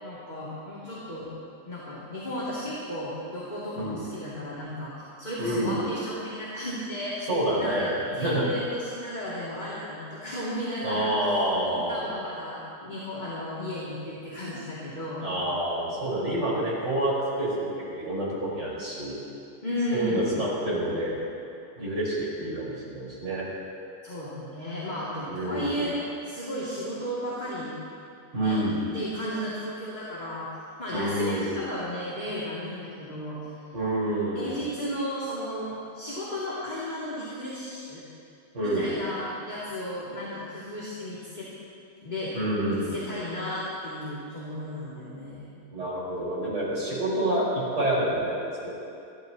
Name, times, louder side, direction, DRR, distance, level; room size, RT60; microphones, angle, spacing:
voice 1, 0.0-1.3 1.7-7.3 7.6-7.9 8.1-15.4 19.6-20.3 24.0-27.7 28.4-28.6 28.9-30.5 30.8-33.4 34.3-38.0 38.6-41.5 42.0-42.3 42.6-45.5, equal, 25° left, -9 dB, 2.5 m, -34 dB
voice 2, 5.4-5.8 7.2-8.5 10.8-12.1 15.2-19.1 19.8-21.2 21.8-23.5 25.3-25.8 28.3-28.9 30.9-31.5 33.7-34.7 38.5-39.0 42.3-43.0 45.7-48.7, right 1 dB, 90° right, -7 dB, 5.3 m, -28 dB
26.5 x 13.0 x 2.9 m, 2.6 s
omnidirectional pair, 1.8 m